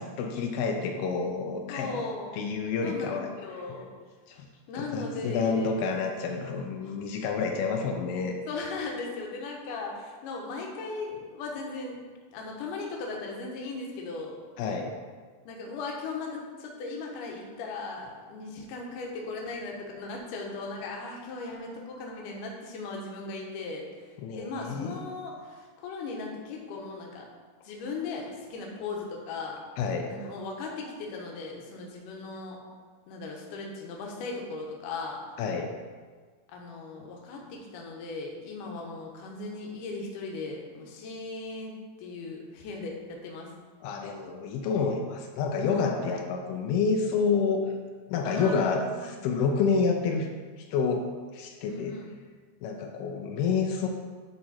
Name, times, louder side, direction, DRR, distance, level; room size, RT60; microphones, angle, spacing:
voice 1, 0.0-2.0 2.3-3.3 4.3-4.5 4.8-8.4 14.6-14.9 24.2-25.0 29.8-30.1 35.4-35.7 43.8-47.6 48.1-50.3 50.7-51.1 51.3-52.0 52.6-53.9, left 5 dB, 85° left, 3 dB, 2.6 m, -28 dB
voice 2, 1.7-2.3 2.8-3.9 4.7-5.8 8.5-12.0 12.3-14.4 15.4-27.3 27.6-29.6 30.1-32.6 33.1-35.2 36.5-41.7 42.0-43.5 46.1-46.2 48.2-49.1 51.7-52.1, left 3 dB, 70° left, -1 dB, 2.4 m, -38 dB
10.0 x 4.3 x 4.2 m, 1.5 s
omnidirectional pair, 4.4 m